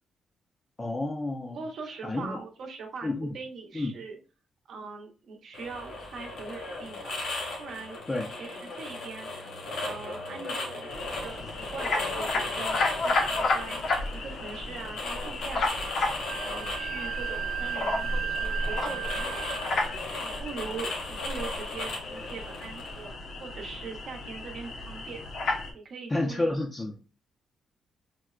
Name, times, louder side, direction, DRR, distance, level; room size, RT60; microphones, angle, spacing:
voice 1, 0.8-1.6 2.0-2.4 3.0-3.4 3.7-3.9 8.1-8.3 26.1-26.9, left 2 dB, 20° left, 0.4 m, -30 dB
voice 2, 1.5-4.2 4.7-7.2 7.6-8.0 8.3-9.5 9.8-16.0 16.4-19.8 20.2-25.2 25.7-26.6, right 4 dB, 60° right, 0.7 m, -42 dB
sound 1, 5.5-23.1, left 2 dB, 85° left, 1.5 m, -37 dB
sound 2, 10.9-25.7, left 2 dB, 60° left, 0.6 m, -32 dB
Wind instrument woodwind instrument, 16.2-20.0, right 12 dB, 90° right, 0.4 m, -35 dB
4.3 x 2.1 x 2.3 m
cardioid pair, 135°, 0 cm